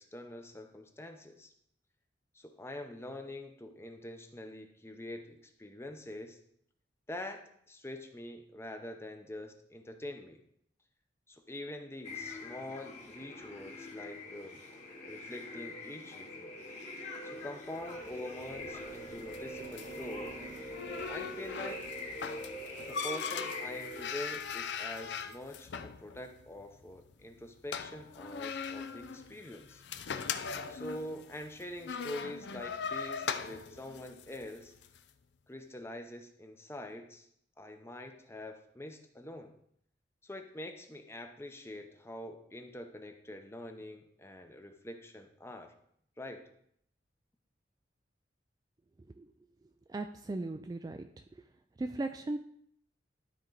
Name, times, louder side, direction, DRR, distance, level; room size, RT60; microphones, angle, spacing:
voice 1, 0.0-1.5 2.3-6.4 7.1-7.4 7.7-10.4 11.3-14.6 15.1-16.6 17.2-20.3 21.1-21.8 22.9-29.8 30.7-34.7 35.5-37.3 37.6-39.6 40.2-45.7 46.2-46.4, left 1 dB, 15° left, 6 dB, 0.7 m, -45 dB
sound 1, 12.0-24.0, left 1 dB, 40° left, 2.2 m, -44 dB
sound 2, 17.7-35.0, left 6 dB, 70° left, 0.5 m, -41 dB
sound 3, 18.2-22.9, right 2 dB, 45° right, 0.9 m, -53 dB
voice 2, 49.9-51.1 51.8-52.4, right 2 dB, 20° right, 6 dB, 0.3 m, -37 dB
12.5 x 4.5 x 3.9 m, 0.69 s
head